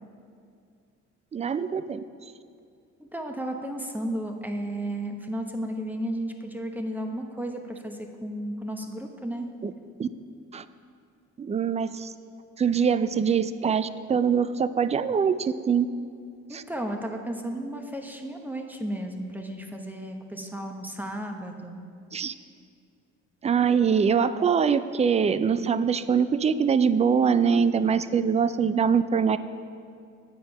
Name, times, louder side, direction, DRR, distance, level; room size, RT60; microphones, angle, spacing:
voice 1, 1.3-2.0 9.6-9.7 10.0-10.1 10.5-10.6 11.4-12.1 12.6-15.9 16.5-16.6 22.1-22.3 23.4-29.4, right 6 dB, 20° right, 14 dB, 0.4 m, -23 dB
voice 2, 3.0-9.5 16.5-21.8, right 1 dB, 5° right, 3 dB, 1.0 m, -33 dB
9.2 x 7.5 x 5.5 m, 2.3 s
cardioid pair, 90°, 30 cm